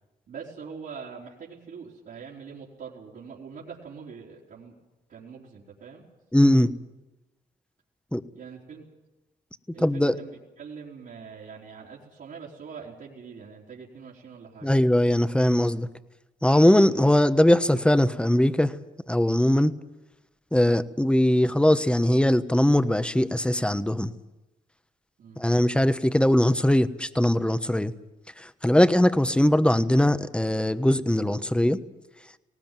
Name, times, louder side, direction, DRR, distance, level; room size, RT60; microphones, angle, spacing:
voice 1, 0.3-4.7 5.1-6.0 8.3-8.9 9.7-14.7 16.9-17.1 25.2-25.4, right 6 dB, 70° right, -7 dB, 4.0 m, -43 dB
voice 2, 6.3-6.7 8.1-8.2 9.8-10.2 14.6-15.9 16.4-18.7 19.1-19.7 20.5-24.1 25.4-27.9 28.4-31.8, left 1 dB, 5° left, 11 dB, 1.2 m, -21 dB
19.5 x 18.0 x 9.2 m, 1.0 s
cardioid pair, 60°, 17 cm